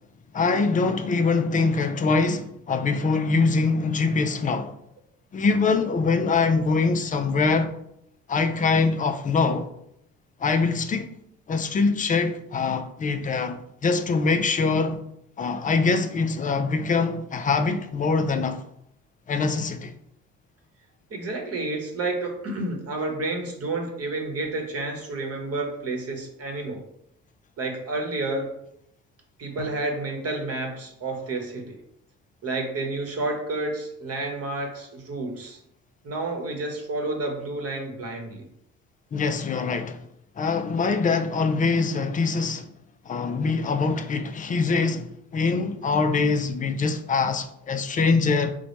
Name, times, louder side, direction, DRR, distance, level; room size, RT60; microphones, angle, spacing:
voice 1, 0.3-4.7 5.3-7.7 8.3-9.7 10.4-11.1 11.5-15.0 15.4-18.6 19.3-19.9 39.1-40.0 40.4-42.7 43.1-48.6, left 4 dB, 25° left, 0.4 m, -23 dB
voice 2, 21.1-26.8 27.6-28.6 29.4-31.8 32.4-35.6 36.0-38.4, right 2 dB, 45° right, 1.0 m, -30 dB
Drum, 29.6-32.3, left 2 dB, 45° left, 1.0 m, -48 dB
3.9 x 2.2 x 3.0 m
hypercardioid pair, 60°, 34 cm